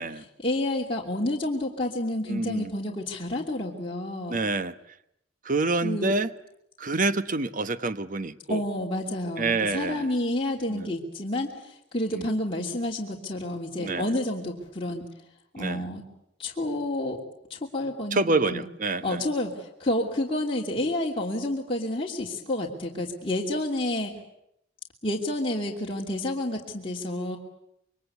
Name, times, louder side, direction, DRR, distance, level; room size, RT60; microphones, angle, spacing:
voice 1, 0.4-4.4 5.8-6.1 8.5-15.0 15.5-16.0 16.4-17.2 17.5-18.6 19.0-24.1 25.0-27.4, left 1 dB, 30° left, -2 dB, 2.9 m, -29 dB
voice 2, 2.3-2.7 4.3-4.7 5.4-6.3 6.8-8.6 9.4-10.1 10.7-10.9 12.1-12.4 13.8-14.1 15.6-15.9 18.1-19.2, right 3 dB, 45° right, 13 dB, 1.1 m, -27 dB
27.5 x 23.0 x 8.3 m, 0.77 s
head